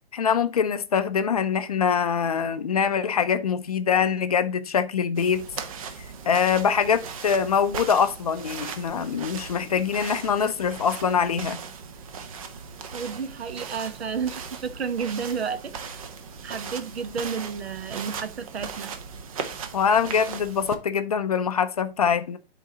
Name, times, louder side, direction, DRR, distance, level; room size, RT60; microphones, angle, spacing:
voice 1, 0.1-5.4 6.3-11.6 19.7-22.4, left 7 dB, 40° left, 0.4 m, -24 dB
sound 1, 5.2-20.8, right 6 dB, 35° right, 0.6 m, -38 dB
voice 2, 12.9-15.7 16.4-18.9, right 6 dB, 80° right, 0.9 m, -31 dB
11.0 x 3.8 x 2.8 m
hypercardioid pair, 155°, 31 cm